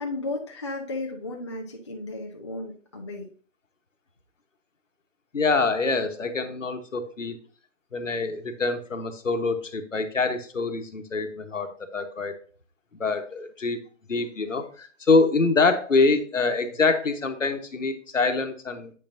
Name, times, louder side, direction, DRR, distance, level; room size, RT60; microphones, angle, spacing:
voice 1, 0.0-3.3, left 2 dB, 25° left, 0 dB, 0.6 m, -34 dB
voice 2, 5.3-7.4 7.9-12.3 13.0-13.8 14.1-18.9, left 3 dB, 75° left, 7 dB, 1.3 m, -25 dB
8.4 x 5.6 x 2.6 m, 0.42 s
figure-of-eight pair, 155°, 38 cm